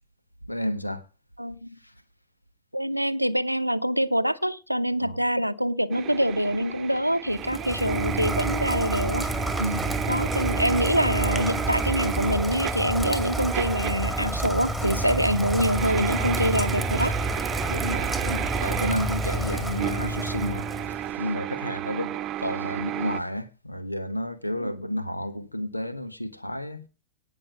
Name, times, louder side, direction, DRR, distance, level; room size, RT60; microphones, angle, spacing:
voice 1, 0.5-1.1 1.8-1.9 5.0-5.2 9.6-9.9 17.7-26.9, equal, 85° left, 1.3 m, -31 dB
voice 2, 1.4-1.7 2.7-9.3 10.1-17.1 24.6-24.7, equal, 90° right, 0.6 m, -25 dB
sound 1, 5.9-23.2, right 12 dB, 35° right, 0.9 m, -33 dB
Rain, 7.3-21.1, right 1 dB, 5° left, 2.1 m, -29 dB
18.0 x 6.2 x 7.4 m
figure-of-eight pair, 90°, 0 cm